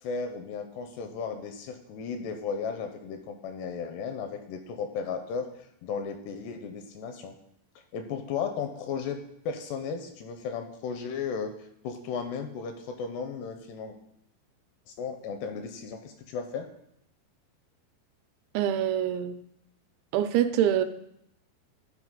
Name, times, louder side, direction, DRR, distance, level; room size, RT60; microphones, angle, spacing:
voice 1, 0.0-5.5 5.8-7.3 7.9-9.2 9.5-11.5 11.8-14.0 14.9-16.7, left 6 dB, 80° left, 6 dB, 2.6 m, -35 dB
voice 2, 18.5-19.4 20.1-20.9, right 10 dB, 90° right, 9 dB, 2.9 m, -25 dB
12.0 x 4.9 x 3.7 m, 0.76 s
omnidirectional pair, 5.2 m